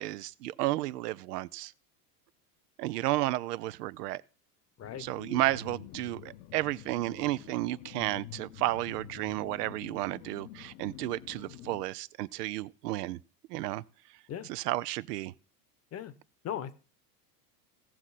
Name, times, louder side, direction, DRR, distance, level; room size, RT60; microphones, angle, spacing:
voice 1, 0.0-1.7 2.8-4.2 5.0-13.2 13.5-13.8 14.5-15.3, right 17 dB, 80° right, 0.6 m, -32 dB
sound 1, 4.8-11.8, left 13 dB, 60° left, 0.9 m, -48 dB
voice 2, 16.4-16.7, left 10 dB, 30° left, 1.0 m, -37 dB
16.5 x 6.2 x 4.1 m
supercardioid pair, 105°, 47 cm